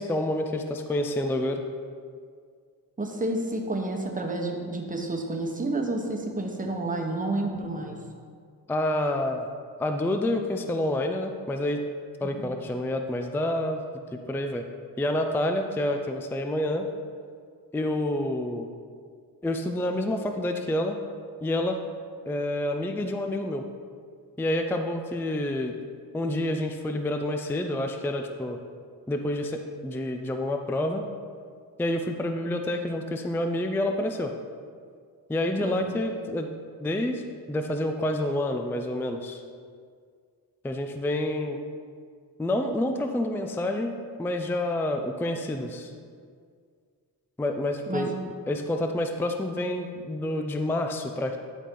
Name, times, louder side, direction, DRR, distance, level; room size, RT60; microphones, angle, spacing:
voice 1, 0.0-1.6 8.7-9.5 9.8-11.8 12.2-13.8 14.3-14.6 15.0-16.9 17.7-18.7 19.4-21.0 21.4-21.8 22.3-23.6 24.4-25.8 26.1-28.6 29.1-31.0 31.8-34.3 35.3-36.5 36.8-37.2 37.5-39.4 40.6-41.6 42.4-43.9 44.2-45.9 47.4-48.1 48.5-51.4, left 1 dB, 5° left, 5 dB, 0.4 m, -28 dB
voice 2, 3.0-8.0 12.2-12.5 35.6-35.9 47.9-48.1, right 2 dB, 20° right, 2 dB, 1.1 m, -30 dB
11.0 x 4.2 x 3.8 m, 2.1 s
cardioid pair, 80°, 41 cm